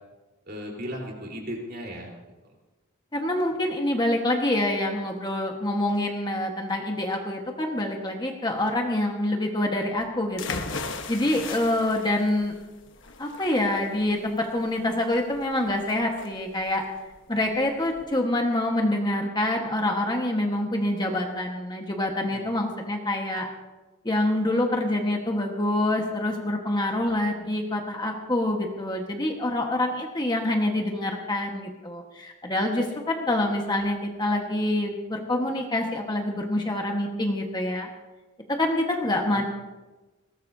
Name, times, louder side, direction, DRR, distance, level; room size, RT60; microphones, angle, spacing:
voice 1, 0.5-2.1 2.4-2.5 22.3-22.6 39.2-39.4, equal, 45° right, -1 dB, 4.1 m, -37 dB
voice 2, 3.1-10.6 11.1-12.5 13.2-16.8 17.3-23.5 24.0-37.9 38.5-39.4, left 1 dB, 20° left, 1 dB, 1.5 m, -26 dB
sound 1, 10.4-18.0, left 4 dB, 60° left, 1.3 m, -38 dB
21.0 x 18.5 x 2.8 m, 1.2 s
head